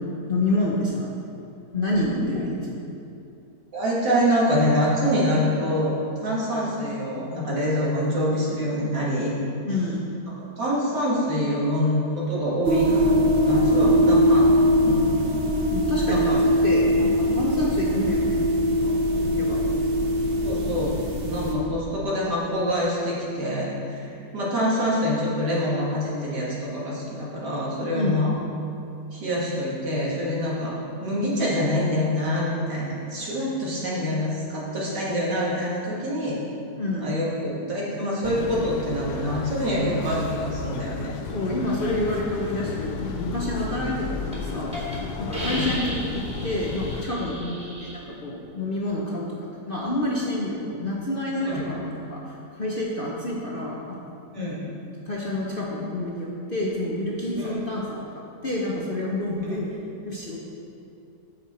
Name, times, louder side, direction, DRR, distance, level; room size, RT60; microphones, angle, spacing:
voice 1, 0.3-1.1 1.7-2.8 9.6-10.0 13.8-14.0 15.7-19.6 27.9-28.2 36.8-37.0 41.2-44.9 45.2-49.3 49.7-54.0 54.4-54.6 55.0-59.8 60.0-60.4, left 1 dB, 45° left, -4 dB, 0.7 m, -28 dB
voice 2, 3.7-9.3 10.4-14.5 14.8-15.1 16.1-16.4 20.4-21.0 21.3-28.4 29.1-30.8 31.0-36.4 37.0-41.2 45.4-45.7 51.4-51.6 54.3-54.6 57.4-57.6 59.5-59.6, equal, 75° right, -6 dB, 2.5 m, -26 dB
sound 1, 12.6-21.5, equal, 45° right, 0.8 m, -21 dB
sound 2, 38.2-47.0, left 5 dB, 80° left, 1.2 m, -33 dB
Hiss, 43.7-43.9 44.3-44.4 44.7-44.9 45.3-47.9, equal, 5° right, 1.9 m, -35 dB
8.8 x 6.9 x 4.3 m, 2.7 s
omnidirectional pair, 1.8 m